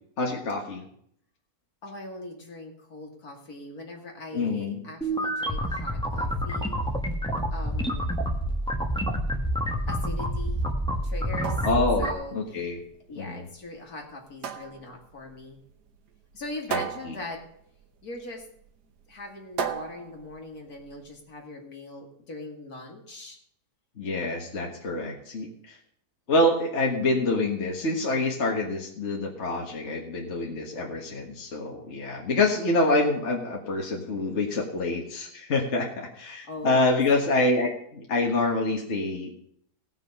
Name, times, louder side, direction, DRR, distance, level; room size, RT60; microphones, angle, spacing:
voice 1, 0.2-0.8 4.3-4.8 11.6-12.8 13.1-13.5 16.7-17.2 24.0-25.8 26.3-39.3, left 2 dB, 45° left, 0 dB, 1.8 m, -26 dB
voice 2, 1.8-6.7 7.5-8.2 9.9-10.6 11.0-11.7 12.0-12.7 13.1-15.6 16.3-17.4 18.0-18.5 19.1-23.4 36.2-37.0, left 2 dB, 65° left, 1 dB, 2.5 m, -41 dB
sound 1, 5.0-12.1, equal, 5° left, 1.1 m, -28 dB
sound 2, 11.2-21.2, right 6 dB, 75° right, 1.6 m, -38 dB
17.5 x 6.0 x 5.4 m, 0.67 s
omnidirectional pair, 1.7 m